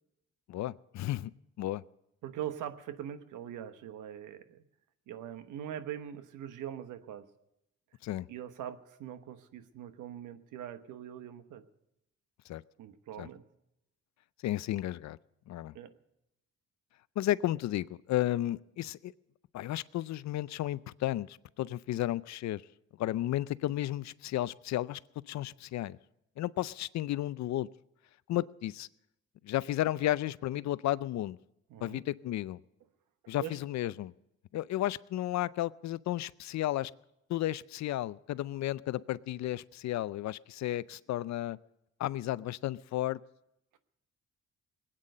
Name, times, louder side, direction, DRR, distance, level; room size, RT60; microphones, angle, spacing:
voice 1, 0.5-1.3 1.6-1.8 8.0-8.3 12.5-12.6 13.2-13.3 14.4-15.2 15.5-15.7 17.2-19.1 19.5-22.6 23.0-25.0 25.3-26.0 26.4-27.7 28.3-28.9 29.4-31.4 31.8-32.6 33.3-34.1 34.5-36.9 37.3-41.6 42.0-43.2, left 14 dB, 65° left, 19 dB, 0.5 m, -33 dB
voice 2, 2.2-4.6 5.1-7.2 8.3-11.6 12.8-13.4 15.7-15.9 31.7-32.0 33.4-33.6 43.7-43.8, right 10 dB, 85° right, 10 dB, 1.2 m, -42 dB
20.5 x 9.1 x 6.6 m, 0.84 s
cardioid pair, 90°, 30 cm